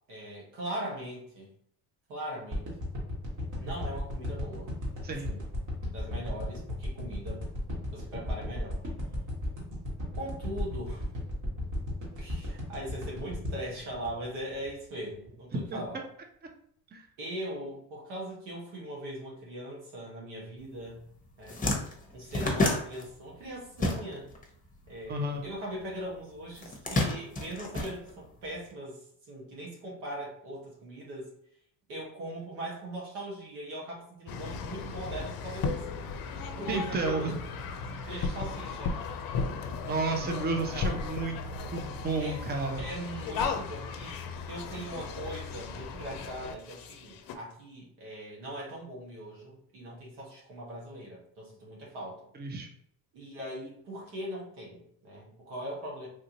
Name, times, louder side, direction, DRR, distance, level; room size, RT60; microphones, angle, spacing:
voice 1, 0.1-1.5 2.1-2.9 3.6-4.7 5.1-5.4 5.9-7.4 7.9-8.8 10.2-11.1 12.2-16.0 17.2-21.0 21.4-21.6 22.1-24.3 24.9-29.0 29.3-31.3 31.9-35.8 36.5-37.4 38.0-39.0 41.7-41.9 42.2-42.4 42.8-44.2 44.5-52.3 53.1-56.1, right 1 dB, 90° right, -3 dB, 1.4 m, -40 dB
sound 1, 2.5-14.8 15.2-15.3, left 1 dB, 45° right, 1.5 m, -35 dB
sound 2, 20.9-21.0 21.3-24.4 24.7-25.9 26.5-28.6, left 2 dB, 20° left, 0.9 m, -30 dB
voice 2, 25.1-25.4 36.7-37.4 38.0-38.3 39.8-41.4 41.7-42.8 52.4-52.7, right 3 dB, 25° right, 3 dB, 0.6 m, -32 dB
sound 3, 34.3-47.4, left 4 dB, 55° left, 0.6 m, -36 dB
3.3 x 2.5 x 2.9 m, 0.67 s
supercardioid pair, 85°, 41 cm